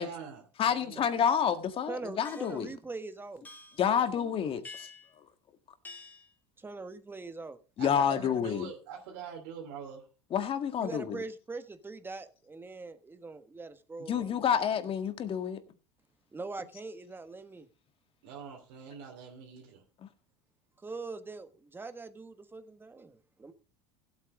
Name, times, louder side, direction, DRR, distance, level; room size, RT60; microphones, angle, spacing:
voice 1, 0.0-1.0 7.8-10.0 18.2-19.8, right 7 dB, 75° right, 2.9 m, -44 dB
voice 2, 0.6-2.7 3.8-4.9 7.8-8.7 10.3-11.2 14.1-15.6 20.0-20.1, left 8 dB, 40° left, 1.8 m, -29 dB
voice 3, 1.9-3.5 3.8-4.2 6.6-7.6 10.8-14.3 14.8-14.9 16.3-17.7 20.8-23.5, right 3 dB, 15° right, 1.4 m, -42 dB
sound 1, 2.2-2.6 3.4-3.8 4.6-5.1 5.8-6.3, left 3 dB, 15° left, 2.9 m, -48 dB
15.5 x 8.5 x 3.7 m
hypercardioid pair, 95°, 14 cm